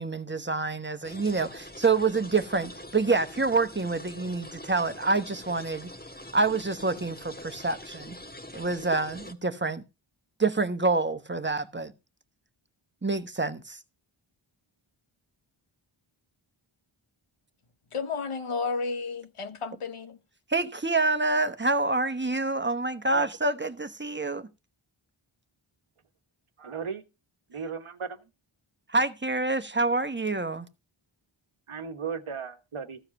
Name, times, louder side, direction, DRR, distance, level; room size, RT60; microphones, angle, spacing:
voice 1, 0.0-5.9 6.3-8.2 8.5-9.8 10.4-11.9 13.0-13.8 20.5-24.5 28.9-30.7, right 3 dB, 20° right, 1.1 m, -27 dB
sound 1, 1.0-9.3, left 1 dB, 20° left, 1.4 m, -44 dB
voice 2, 17.9-20.2, left 4 dB, 90° left, 1.0 m, -32 dB
voice 3, 26.6-27.0 27.5-28.2 31.7-33.0, right 6 dB, 80° right, 1.3 m, -36 dB
14.5 x 4.9 x 5.9 m
wide cardioid pair, 45°, 49 cm